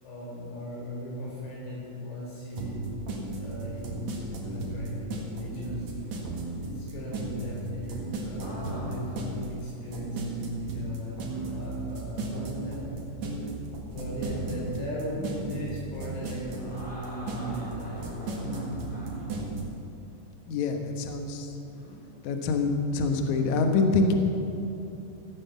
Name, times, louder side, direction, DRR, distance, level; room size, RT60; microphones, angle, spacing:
voice 1, 0.0-5.9 6.6-11.2 11.4-13.1 13.9-18.9, left 1 dB, 90° left, -5 dB, 6.8 m, -38 dB
sound 1, 2.6-19.6, right 3 dB, 50° right, 2.6 m, -35 dB
sound 2, 5.7-6.4 8.4-9.2 9.8-9.9 11.2-11.8 14.1-14.8 16.5-19.4 21.6-22.0, equal, 15° left, 1.8 m, -45 dB
voice 2, 20.5-21.5 22.2-24.1, left 3 dB, 70° left, 4 dB, 1.9 m, -25 dB
16.0 x 9.8 x 7.1 m, 2.8 s
omnidirectional pair, 4.9 m